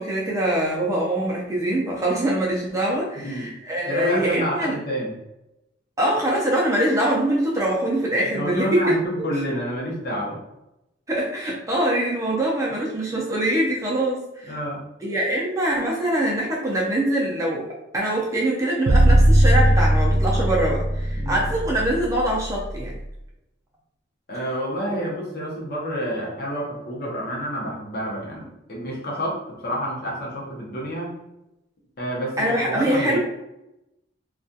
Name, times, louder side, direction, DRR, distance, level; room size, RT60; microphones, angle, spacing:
voice 1, 0.0-4.8 6.0-9.0 11.1-14.5 15.0-17.7 17.9-23.0 32.4-33.2, right 1 dB, 15° right, -4 dB, 0.4 m, -23 dB
voice 2, 3.2-3.5 3.8-5.1 8.3-10.4 14.5-14.8 21.2-21.4 24.3-31.2 32.0-32.4 32.7-33.2, equal, 50° left, -3 dB, 0.7 m, -29 dB
sound 1, 18.9-23.0, right 1 dB, 90° right, 0.4 m, -18 dB
2.3 x 2.3 x 2.6 m, 0.89 s
head